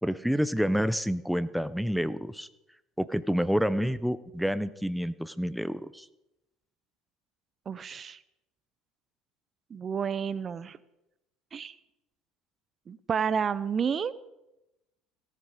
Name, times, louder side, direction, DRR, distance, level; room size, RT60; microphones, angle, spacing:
voice 1, 0.0-2.5 3.0-6.1, equal, ahead, 15 dB, 0.7 m, -28 dB
voice 2, 7.7-8.2 9.7-10.8 11.5-11.7 12.9-14.1, right 7 dB, 35° right, 17 dB, 0.6 m, -30 dB
17.5 x 11.0 x 5.0 m, 0.94 s
hypercardioid pair, 75°, 0 cm